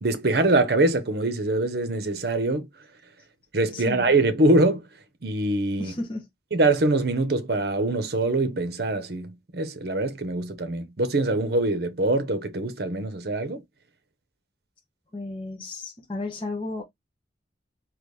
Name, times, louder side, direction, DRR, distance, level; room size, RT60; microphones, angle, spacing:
voice 1, 0.0-2.7 3.5-4.8 5.2-5.9 6.5-13.6, right 2 dB, 60° right, 0.8 m, -23 dB
voice 2, 3.7-4.1 5.8-6.3 15.1-16.8, left 2 dB, 30° left, 0.9 m, -33 dB
4.0 x 2.9 x 3.2 m
head